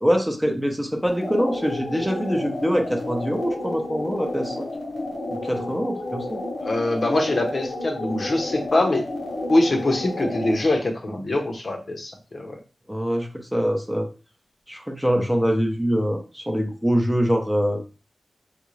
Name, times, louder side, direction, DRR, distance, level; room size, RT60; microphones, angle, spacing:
voice 1, 0.0-4.7 5.3-6.4 12.9-14.1 14.7-17.8, equal, 5° right, 3 dB, 0.6 m, -24 dB
sound 1, 1.1-10.7, left 2 dB, 80° left, 1.1 m, -31 dB
voice 2, 6.6-9.0 9.5-12.6, left 2 dB, 55° left, 2 dB, 0.8 m, -23 dB
3.5 x 2.5 x 3.1 m, 0.33 s
cardioid pair, 65°, 0 cm